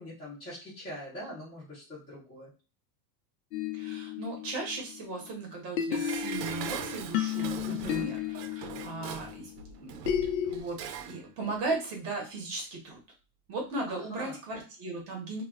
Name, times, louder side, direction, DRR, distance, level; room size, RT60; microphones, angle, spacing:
voice 1, 0.0-2.5 7.7-8.1 13.9-14.4, left 1 dB, 10° left, -10 dB, 0.5 m, -42 dB
sound 1, 3.5-5.3 5.8-10.6, left 9 dB, 85° left, 0.6 m, -33 dB
voice 2, 3.7-8.2 8.5-9.5 9.8-10.0 10.4-13.0 13.5-15.4, right 3 dB, 30° right, 0 dB, 0.8 m, -37 dB
Dishes pots and pans, 5.9-11.2 11.5-11.6, right 7 dB, 80° right, 0.6 m, -41 dB
2.2 x 2.1 x 3.5 m, 0.33 s
supercardioid pair, 170°, 48 cm